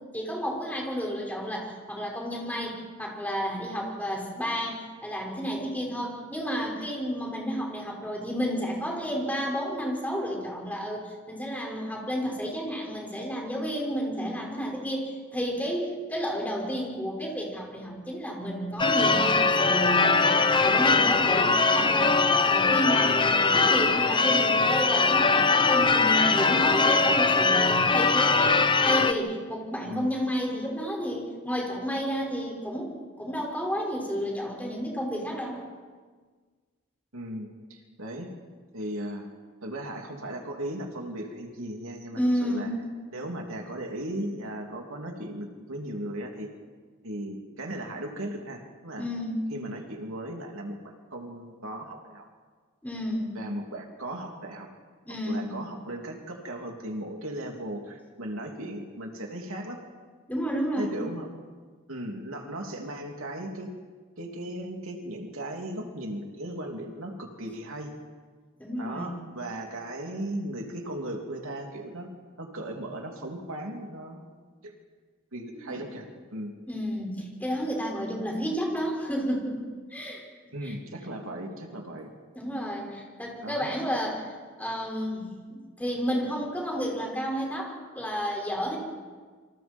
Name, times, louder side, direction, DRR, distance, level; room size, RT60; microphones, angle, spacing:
voice 1, 0.1-20.2 20.6-35.6 42.1-42.8 49.0-49.4 52.8-53.3 55.1-55.5 60.3-61.0 68.6-69.1 75.5-75.7 76.7-80.2 80.6-80.7 82.4-88.8, equal, 10° left, -2 dB, 5.5 m, -31 dB
Church bell / Car / Alarm, 18.8-29.1, left 4 dB, 25° left, 0.8 m, -21 dB
voice 2, 21.4-21.9 29.8-30.1 37.1-38.3 38.7-39.2 39.6-42.7 43.1-46.5 47.0-49.1 49.5-52.3 53.3-54.7 55.3-59.8 60.8-61.3 61.9-63.7 64.2-67.9 68.8-72.1 72.4-74.3 74.6-74.7 75.3-76.5 80.5-82.1 83.4-83.7, right 1 dB, 80° right, 1 dB, 3.1 m, -37 dB
28.0 x 25.5 x 4.6 m, 1.5 s
head